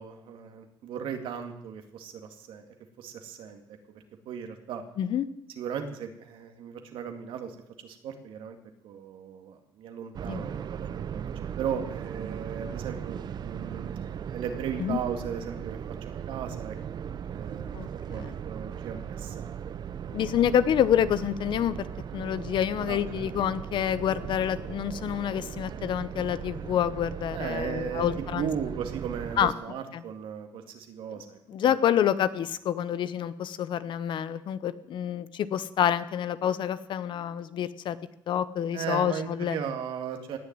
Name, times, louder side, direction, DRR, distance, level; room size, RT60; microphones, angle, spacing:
voice 1, 0.0-2.7 3.0-3.6 3.9-4.8 5.6-8.6 8.8-13.9 14.3-15.8 16.3-17.7 18.1-20.2 22.9-23.4 27.3-28.1 28.3-31.8 38.7-40.4, right 7 dB, 85° right, 6 dB, 2.2 m, -37 dB
sound 1, 10.1-29.5, right 8 dB, 55° right, 0.7 m, -38 dB
voice 2, 17.7-18.3 20.1-21.8 22.1-28.5 29.4-29.5 29.9-30.0 31.1-31.2 31.5-38.0 38.3-39.6, left 10 dB, 70° left, 15 dB, 0.9 m, -27 dB
18.0 x 7.0 x 9.5 m, 0.81 s
cardioid pair, 100°, 9 cm